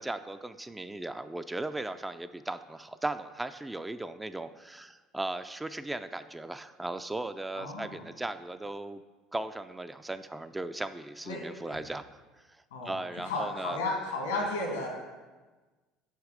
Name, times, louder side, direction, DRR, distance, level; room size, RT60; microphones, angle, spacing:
voice 1, 0.0-9.0 9.3-13.8, right 2 dB, 10° right, 10 dB, 0.3 m, -37 dB
voice 2, 7.6-8.1 11.3-11.4 11.7-11.8 12.7-13.0 13.2-14.9, left 2 dB, 85° left, 0 dB, 1.7 m, -33 dB
6.4 x 4.7 x 5.0 m, 1.3 s
hypercardioid pair, 65°, 0 cm